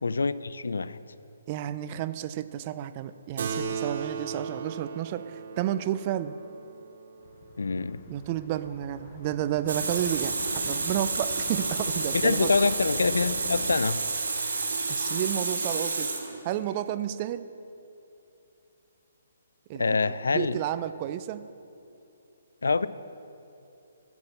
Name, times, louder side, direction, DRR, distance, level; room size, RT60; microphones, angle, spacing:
voice 1, 0.0-1.0 7.6-8.0 12.2-14.0 19.8-20.6 22.6-22.9, left 4 dB, 85° left, 16 dB, 0.4 m, -25 dB
voice 2, 1.5-6.3 8.1-12.5 14.9-16.1 16.4-17.5 19.7-20.0 20.3-21.5, right 12 dB, 35° right, 14 dB, 0.5 m, -31 dB
Keyboard (musical), 3.4-8.3, right 5 dB, 60° right, 1.0 m, -37 dB
sound 1, 7.2-13.8, left 5 dB, 45° left, 0.9 m, -44 dB
Water tap faucet, 9.7-16.7, right 3 dB, 80° right, 1.8 m, -30 dB
10.5 x 7.4 x 7.9 m, 2.7 s
hypercardioid pair, 145°, 0 cm